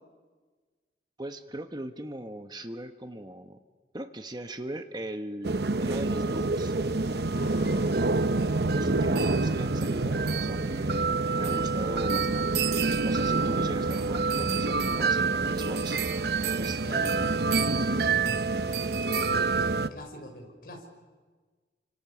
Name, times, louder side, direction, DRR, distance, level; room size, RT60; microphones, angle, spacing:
voice 1, 1.2-3.6 3.9-6.8 8.7-16.0 16.6-17.3, right 1 dB, 25° right, 8 dB, 1.0 m, -39 dB
sound 1, 5.4-19.9, right 3 dB, 65° right, 0.9 m, -27 dB
voice 2, 7.3-8.5 16.8-17.4 18.9-20.9, equal, 55° left, 3 dB, 5.4 m, -44 dB
30.0 x 25.5 x 7.0 m, 1.4 s
head